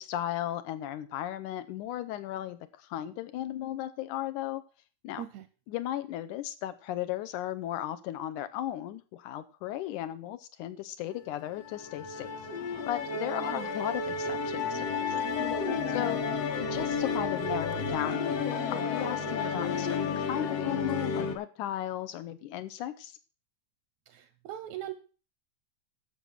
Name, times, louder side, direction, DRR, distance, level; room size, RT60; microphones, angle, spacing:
voice 1, 0.0-4.6 5.0-5.2 5.7-12.4 12.9-15.2 15.9-16.3 16.6-18.5 18.7-23.2, left 12 dB, 75° left, 12 dB, 2.0 m, -35 dB
Musical instrument, 11.2-21.4, left 5 dB, 55° left, 2.0 m, -32 dB
voice 2, 15.7-16.2 24.1-24.9, right 12 dB, 75° right, 12 dB, 1.7 m, -41 dB
11.0 x 7.0 x 6.2 m, 0.37 s
omnidirectional pair, 3.8 m